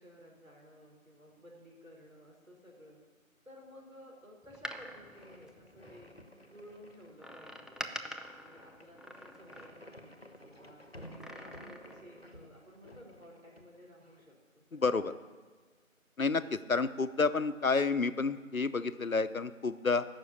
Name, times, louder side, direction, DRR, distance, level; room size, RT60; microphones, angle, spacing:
voice 1, 0.0-3.0 3.4-6.1 6.5-7.8 8.4-15.1, equal, 65° right, 0 dB, 4.7 m, -55 dB
Door, 4.4-6.3 7.2-10.1 11.0-12.1 12.4-12.5, equal, ahead, 0.5 m, -46 dB
sound 1, 4.8-14.3, equal, 45° left, 1.0 m, -54 dB
voice 2, 14.7-15.1 16.2-20.0, left 4 dB, 75° left, 13 dB, 0.8 m, -30 dB
14.0 x 6.3 x 8.3 m, 1.4 s
figure-of-eight pair, 175°, 42 cm